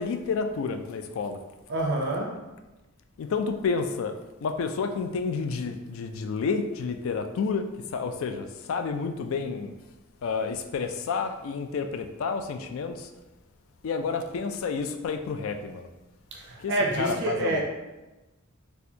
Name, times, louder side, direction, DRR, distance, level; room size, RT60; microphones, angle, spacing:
voice 1, 0.0-1.4 3.2-4.1 4.4-7.7 7.9-9.7 10.2-13.1 13.8-15.9 16.6-17.6, left 5 dB, 70° left, 7 dB, 0.3 m, -30 dB
voice 2, 1.7-2.4 16.3-17.6, right 1 dB, 55° right, 0 dB, 0.5 m, -27 dB
4.2 x 2.3 x 2.7 m, 1.1 s
head